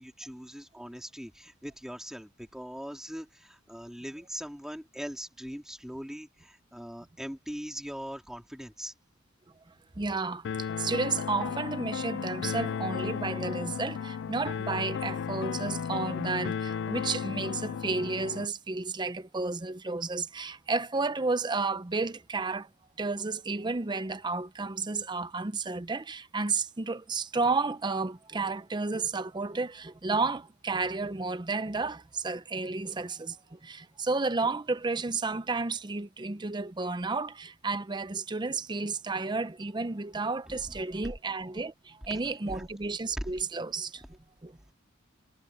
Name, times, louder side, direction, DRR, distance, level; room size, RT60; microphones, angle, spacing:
voice 1, 0.0-8.9 40.5-40.6 42.1-42.2 42.5-42.7 43.2-43.3 44.6-44.7, equal, 5° right, 3.7 m, -41 dB
voice 2, 10.0-22.7 23.0-44.0 44.4-44.6, right 3 dB, 20° right, 0.6 m, -32 dB
sound 1, 10.4-18.5, left 7 dB, 60° left, 0.3 m, -34 dB
head